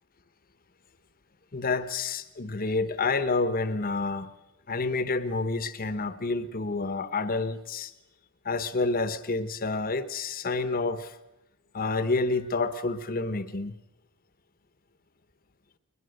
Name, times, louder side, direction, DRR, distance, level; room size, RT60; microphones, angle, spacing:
voice 1, 1.5-4.3 4.7-7.9 8.4-11.2 11.7-13.7, left 3 dB, 40° left, 1.0 m, -29 dB
21.0 x 21.0 x 6.6 m
head